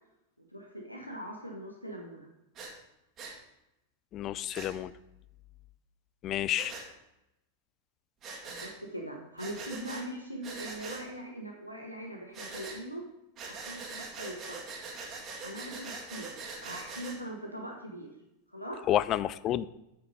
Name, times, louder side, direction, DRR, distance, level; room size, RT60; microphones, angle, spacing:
voice 1, 0.5-2.3 8.4-13.0 13.4-14.6 15.4-16.3 16.6-18.1 18.5-18.8, right 1 dB, 90° left, 0 dB, 1.0 m, -41 dB
Breathing, 2.5-2.7 3.2-3.3 4.5-4.7 6.5-6.8 8.2-8.7 9.4-10.0 10.4-11.0 12.3-12.8 13.4-17.2, right 4 dB, 30° right, 1.8 m, -42 dB
voice 2, 4.1-4.9 6.2-6.7 18.9-19.7, left 12 dB, 35° left, 17 dB, 0.3 m, -29 dB
8.5 x 5.8 x 4.9 m, 0.89 s
figure-of-eight pair, 90°, 0 cm